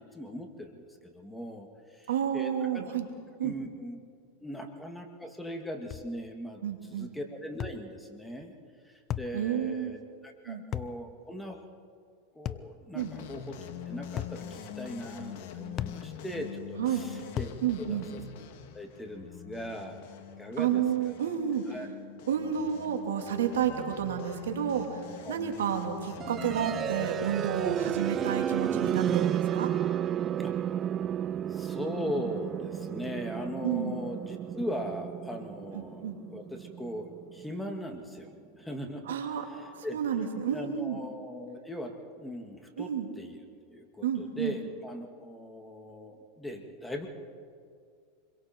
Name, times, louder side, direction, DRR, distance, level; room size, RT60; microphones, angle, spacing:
voice 1, 0.0-3.0 3.4-4.0 4.4-8.6 8.8-11.6 12.3-13.6 13.9-17.5 17.8-18.2 18.7-21.2 21.7-21.9 25.2-25.4 30.4-30.6 31.5-38.3 38.6-39.2 39.5-40.0 40.5-47.1, equal, 5° left, 3 dB, 2.4 m, -39 dB
voice 2, 2.1-3.1 3.4-3.5 6.6-7.1 9.3-10.0 10.5-10.6 12.9-13.1 16.8-17.0 17.6-18.1 20.6-21.6 22.3-25.0 25.3-29.7 33.6-34.0 35.7-36.2 39.1-39.5 39.9-41.0 42.8-43.1 44.0-44.6, right 8 dB, 85° right, 4 dB, 2.6 m, -30 dB
sound 1, 5.9-6.1 7.6-7.8 9.1-9.4 10.7-11.0 12.5-12.7 14.2-14.4 15.8-16.0 17.4-17.6, left 11 dB, 35° left, 0.7 m, -34 dB
sound 2, 13.0-28.0, left 8 dB, 60° left, 2.1 m, -44 dB
sound 3, 26.2-38.1, right 10 dB, 35° right, 0.4 m, -32 dB
27.5 x 22.5 x 4.6 m, 2.2 s
hypercardioid pair, 115°, 0 cm